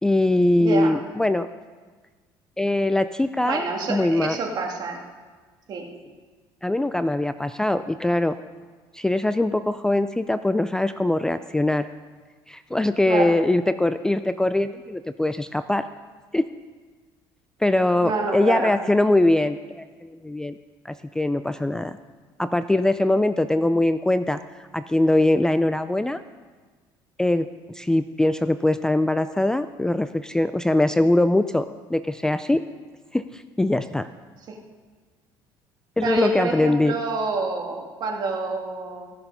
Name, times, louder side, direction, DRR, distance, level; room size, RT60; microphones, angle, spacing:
voice 1, 0.0-1.5 2.6-3.6 3.9-4.4 6.6-8.4 8.9-11.9 12.5-15.9 16.3-16.5 17.6-20.5 20.8-21.9 22.4-24.4 24.7-26.2 27.2-27.5 27.7-32.6 33.1-34.1 36.0-36.9, left 1 dB, 5° left, 12 dB, 0.3 m, -22 dB
voice 2, 0.6-0.9 3.4-5.0 5.7-5.9 13.1-13.4 18.0-18.7 34.5-34.6 36.0-39.1, right 3 dB, 50° right, 1 dB, 2.1 m, -27 dB
15.5 x 6.9 x 5.5 m, 1.4 s
cardioid pair, 105°, 9 cm